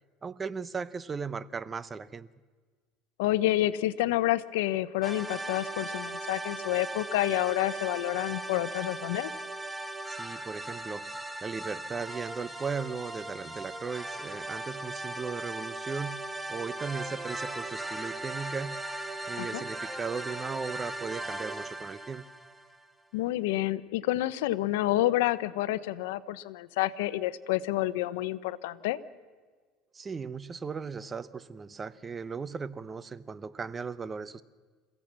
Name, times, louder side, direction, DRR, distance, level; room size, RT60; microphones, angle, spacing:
voice 1, 0.2-2.3 10.1-16.2 16.5-18.8 19.3-22.2 29.9-34.4, right 5 dB, 20° right, 0.7 m, -37 dB
voice 2, 3.2-9.3 19.4-19.6 23.1-29.0, left 15 dB, 90° left, 0.8 m, -29 dB
sound 1, 5.0-22.8, right 2 dB, 5° right, 1.3 m, -38 dB
28.5 x 16.0 x 7.5 m
supercardioid pair, 125°, 0 cm